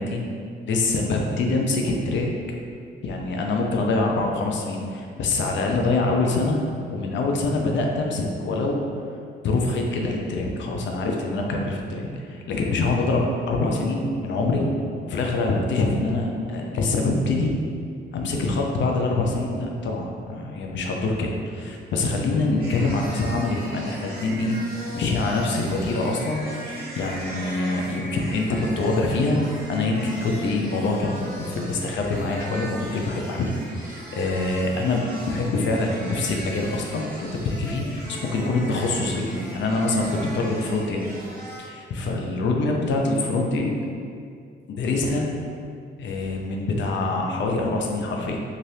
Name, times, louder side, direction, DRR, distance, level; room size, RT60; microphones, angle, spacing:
voice 1, 0.6-2.3 3.0-6.6 6.9-8.8 9.4-14.7 15.1-17.5 18.1-24.6 24.9-26.4 26.7-41.1 41.6-43.8 44.7-45.3 46.0-48.4, left 2 dB, 60° left, 1 dB, 0.5 m, -25 dB
sound 1, 22.6-41.6, right 1 dB, 45° right, 0.9 m, -39 dB
2.7 x 2.5 x 3.2 m, 2.3 s
supercardioid pair, 60°, 21 cm